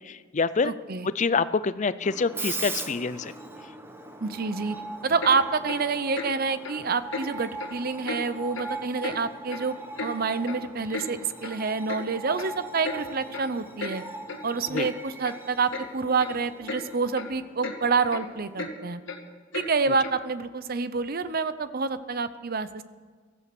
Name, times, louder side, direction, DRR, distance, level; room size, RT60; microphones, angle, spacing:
voice 1, 0.0-0.7 1.0-3.3 14.7-14.9, left 4 dB, 40° left, 15 dB, 0.5 m, -26 dB
voice 2, 0.6-1.1 4.2-4.8 5.0-9.7 10.0-14.0 14.4-19.0 19.5-22.8, right 4 dB, 50° right, 13 dB, 0.7 m, -27 dB
Screech, 2.0-18.6, right 2 dB, 10° right, 1.1 m, -40 dB
Clock, 5.2-5.4 5.7-5.8 6.1-6.3 6.6-6.8 7.1-7.3 7.6-7.7 8.1-8.2 8.5-8.7 9.0-9.2 9.5-10.1 10.5-10.6 10.9-11.1 11.4-11.6 11.9-12.0 12.4-12.5 12.8-13.0 13.3-13.5 13.8-14.0 14.3-14.4 14.7-14.9 15.2-15.3 15.7-15.9 16.2-16.4 16.7-16.8 17.2-17.3 17.6-17.8 18.1-18.2 18.6-18.7 19.1-19.2 19.5-19.7 20.0-20.2, left 3 dB, 75° left, 2.0 m, -34 dB
16.0 x 13.5 x 6.1 m, 1.5 s
head